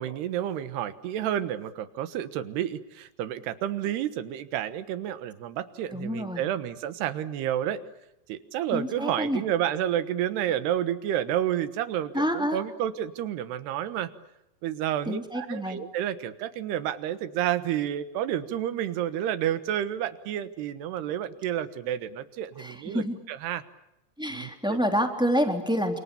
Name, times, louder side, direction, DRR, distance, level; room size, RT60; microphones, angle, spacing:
voice 1, 0.0-7.8 8.3-14.1 14.6-23.6 24.3-24.8, right 11 dB, 80° right, 12 dB, 3.4 m, -30 dB
voice 2, 5.9-6.4 8.7-9.4 12.1-12.6 15.1-15.8 22.6-23.2 24.2-26.0, equal, ahead, 5 dB, 2.5 m, -28 dB
29.0 x 27.5 x 7.0 m, 0.86 s
omnidirectional pair, 4.7 m